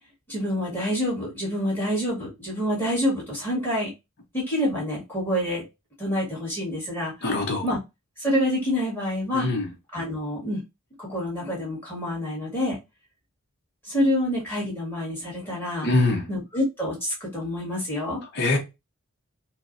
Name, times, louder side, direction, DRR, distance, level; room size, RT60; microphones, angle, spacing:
voice 1, 0.3-3.9 4.3-5.6 6.0-7.3 7.6-7.8 8.2-9.5 9.9-10.6 11.0-12.8 13.8-15.9 16.3-18.2, left 1 dB, 10° left, 1.5 m, -27 dB
voice 2, 7.2-7.6 9.3-9.7 15.8-16.2 18.4-18.6, left 2 dB, 50° left, 0.7 m, -23 dB
4.3 x 2.0 x 2.5 m
head